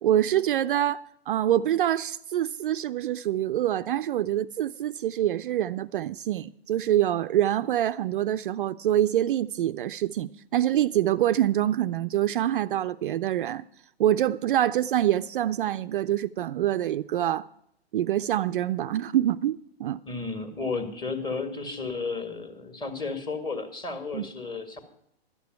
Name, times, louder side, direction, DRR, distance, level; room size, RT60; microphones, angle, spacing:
voice 1, 0.0-13.6 14.0-17.5 17.9-20.0 24.1-24.3, right 12 dB, 55° right, 0.4 m, -25 dB
voice 2, 20.1-24.8, left 4 dB, 15° left, 1.8 m, -33 dB
12.0 x 6.7 x 9.3 m
hypercardioid pair, 135°, 32 cm